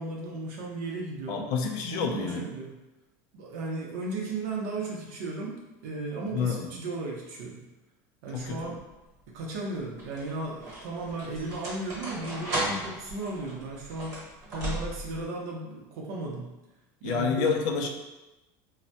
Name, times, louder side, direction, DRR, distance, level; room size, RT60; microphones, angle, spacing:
voice 1, 0.0-1.5 1.9-2.8 3.3-7.7 8.2-8.8 9.3-16.6 17.0-17.5, right 2 dB, 75° right, -2 dB, 0.6 m, -35 dB
voice 2, 1.3-2.5 6.3-6.7 8.3-8.7 17.0-17.9, left 5 dB, 45° left, 3 dB, 0.4 m, -29 dB
sound 1, 8.5-8.9 9.8-15.3, right 1 dB, 35° right, 1.1 m, -36 dB
3.2 x 2.0 x 2.7 m, 1.0 s
cardioid pair, 175°, 9 cm